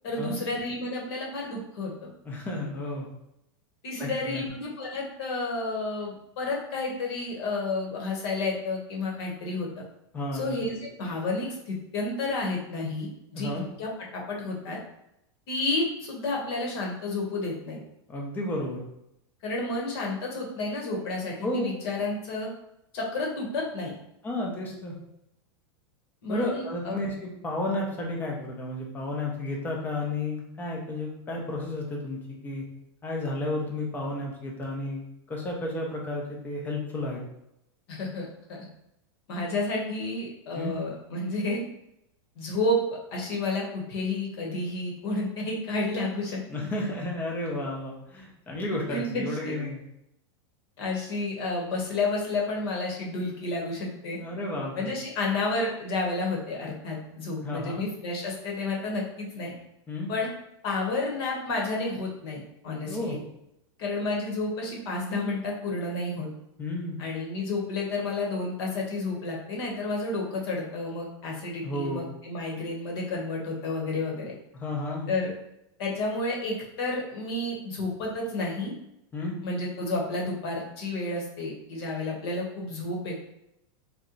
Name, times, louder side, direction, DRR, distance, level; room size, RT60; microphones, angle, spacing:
voice 1, 0.0-2.1 3.8-9.7 10.3-14.8 15.5-17.8 19.4-22.5 22.9-23.9 26.2-27.0 37.9-38.6 39.3-41.6 42.4-46.4 48.9-49.6 50.8-54.2 54.8-59.5 60.1-60.3 60.6-63.2 63.8-66.3 67.0-74.3 75.1-75.3 75.8-78.7 79.4-83.2, left 2 dB, 60° left, -1 dB, 1.0 m, -31 dB
voice 2, 2.2-3.1 4.0-4.4 10.1-10.6 13.3-13.7 18.1-18.8 21.4-21.6 24.2-25.0 26.3-32.7 33.0-35.0 35.3-37.2 40.5-40.7 46.5-49.8 54.1-54.9 57.4-57.9 59.9-60.1 62.9-63.2 66.6-67.0 71.6-72.0 74.5-75.1 79.1-79.3, left 1 dB, 10° left, -1 dB, 0.5 m, -32 dB
2.8 x 2.2 x 3.7 m, 0.82 s
supercardioid pair, 155°, 14 cm